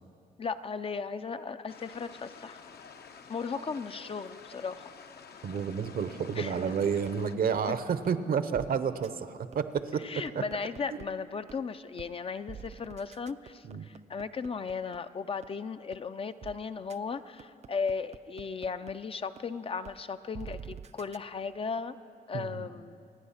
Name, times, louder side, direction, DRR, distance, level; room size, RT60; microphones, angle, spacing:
voice 1, 0.4-2.6 3.3-4.9 6.4-6.6 10.0-22.0 22.3-23.1, left 5 dB, 35° left, 11 dB, 0.4 m, -36 dB
sound 1, 1.7-7.4, left 6 dB, 70° left, 0.9 m, -50 dB
voice 2, 5.4-10.0 10.3-10.4 13.6-13.9 22.3-22.7, right 6 dB, 60° right, 12 dB, 0.8 m, -30 dB
sound 2, 5.6-7.1 7.6-7.7 8.0-8.1 8.5-8.7 9.0-9.1 9.5-11.0 11.5-11.6 12.0-12.1 12.5-15.0 15.4-15.5 15.9-16.0 16.4-16.5 16.9-17.0 17.4-18.9 19.4-19.5 19.8-19.9 20.3-21.2, right 7 dB, 40° right, 0.4 m, -46 dB
27.0 x 9.5 x 5.7 m, 2.5 s
cardioid pair, 120°, 17 cm